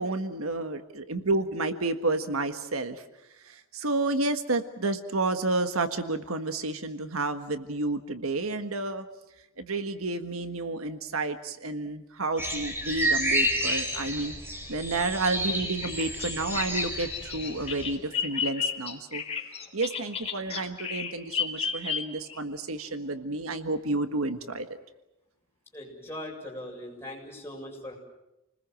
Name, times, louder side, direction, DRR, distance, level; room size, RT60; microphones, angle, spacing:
voice 1, 0.0-3.0 3.4-9.0 9.6-14.3 14.7-19.2 19.7-24.7, right 2 dB, 80° right, 8 dB, 1.6 m, -30 dB
sound 1, 12.4-17.9, equal, 10° right, 4.9 m, -30 dB
Bird vocalization bird call bird song, 15.8-22.4, left 7 dB, 30° left, 3.7 m, -33 dB
voice 2, 19.2-19.7 25.7-28.0, left 1 dB, 10° left, -2 dB, 7.5 m, -41 dB
29.5 x 20.5 x 7.7 m, 0.93 s
head